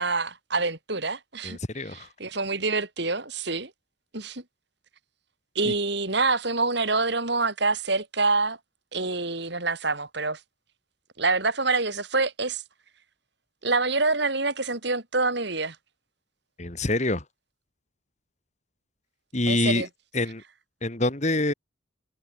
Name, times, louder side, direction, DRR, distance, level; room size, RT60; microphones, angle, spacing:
voice 1, 0.0-3.7 4.1-4.4 5.6-8.6 8.9-10.4 11.2-12.6 13.6-15.8 19.5-19.9, right 3 dB, 55° right, 3.8 m, -26 dB
voice 2, 1.4-2.1 5.7-5.8 16.6-17.2 19.3-19.9 20.1-20.4 20.8-21.5, left 2 dB, 35° left, 2.5 m, -26 dB
head